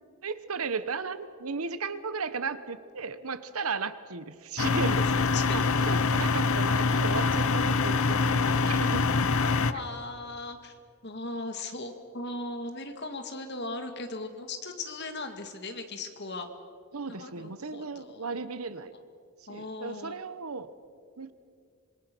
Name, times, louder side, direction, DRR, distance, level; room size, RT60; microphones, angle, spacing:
voice 1, 0.2-5.0 5.5-9.1 9.7-9.8 16.9-18.9 19.5-20.7 21.2-21.3, right 4 dB, 85° right, 13 dB, 1.1 m, -35 dB
sound 1, 4.6-9.7, left 4 dB, 75° left, 0.7 m, -25 dB
voice 2, 5.0-5.6 9.2-10.7 11.0-16.5 17.1-18.4 19.5-20.2, left 2 dB, 50° left, 7 dB, 2.0 m, -38 dB
26.5 x 22.0 x 6.1 m, 2.2 s
head